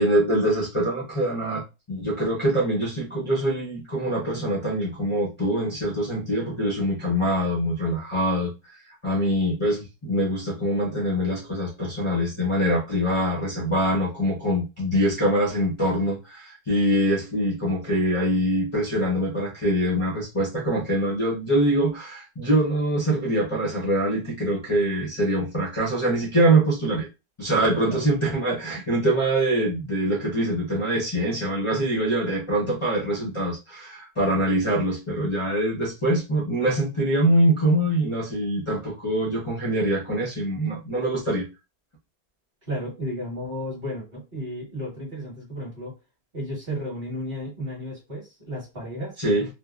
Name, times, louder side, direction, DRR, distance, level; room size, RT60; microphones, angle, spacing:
voice 1, 0.0-1.6 1.9-8.5 8.9-27.1 27.4-41.5 49.2-49.5, right 1 dB, 25° left, -4 dB, 0.6 m, -24 dB
voice 2, 42.7-45.9 46.3-49.2, equal, 35° right, -4 dB, 1.5 m, -33 dB
3.6 x 2.1 x 2.4 m, 0.27 s
omnidirectional pair, 1.9 m